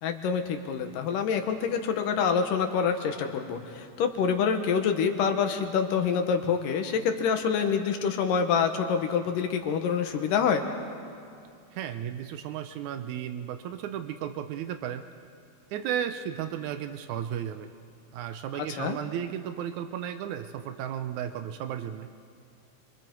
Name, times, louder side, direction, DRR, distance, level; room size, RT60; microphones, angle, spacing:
voice 1, 0.0-10.6 18.8-19.0, left 6 dB, 70° left, 6 dB, 2.7 m, -26 dB
voice 2, 11.7-15.0 15.7-17.7 18.1-22.1, right 9 dB, 85° right, 9 dB, 1.7 m, -34 dB
30.0 x 24.0 x 4.6 m, 2.4 s
omnidirectional pair, 4.3 m